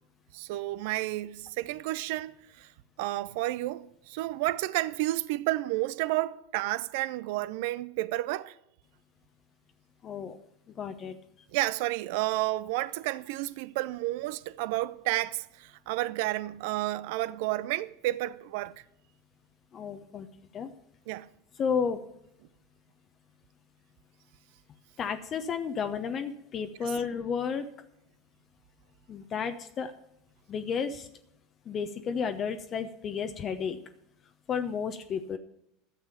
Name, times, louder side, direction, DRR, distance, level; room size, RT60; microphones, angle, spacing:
voice 1, 0.3-2.7 3.0-8.6 11.5-18.7 21.1-21.3 26.8-27.0, right 17 dB, 60° right, 0.5 m, -31 dB
voice 2, 10.0-10.4 10.8-11.2 19.7-20.3 20.5-20.7 21.6-22.0 25.0-27.7 29.1-29.9 30.5-31.1 31.7-33.8 34.5-35.4, left 6 dB, 35° left, 0.8 m, -32 dB
12.5 x 7.4 x 6.9 m
figure-of-eight pair, 80°, 0 cm